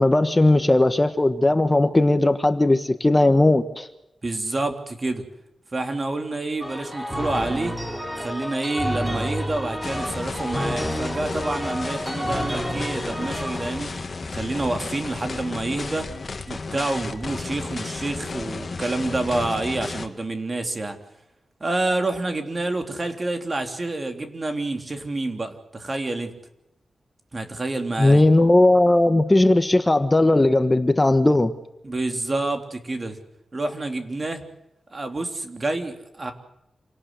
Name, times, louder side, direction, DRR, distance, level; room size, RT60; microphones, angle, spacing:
voice 1, 0.0-3.9 28.0-31.5, left 2 dB, 20° left, 9 dB, 1.4 m, -17 dB
voice 2, 4.2-5.2 5.7-7.8 8.2-14.0 14.3-16.1 16.5-21.0 21.6-26.3 27.3-28.2 31.8-33.2 33.5-34.4 34.9-36.3, right 2 dB, 35° right, 5 dB, 3.6 m, -28 dB
sound 1, 6.6-13.8, equal, 15° right, 3.9 m, -30 dB
sound 2, 9.8-20.1, left 3 dB, 45° left, 2.5 m, -33 dB
28.0 x 18.5 x 8.2 m, 0.87 s
cardioid pair, 75°, 0 cm